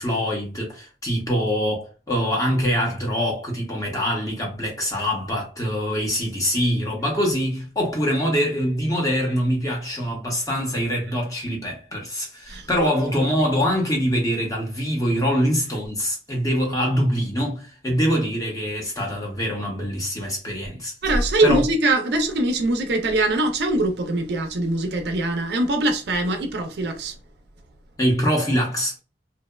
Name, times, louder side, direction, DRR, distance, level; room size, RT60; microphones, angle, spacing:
voice 1, 0.0-20.9 21.4-21.6 28.0-28.9, equal, 20° left, 0.7 m, -24 dB
voice 2, 12.5-12.9 21.0-27.1, right 2 dB, 65° right, 0.4 m, -22 dB
2.8 x 2.0 x 2.2 m
head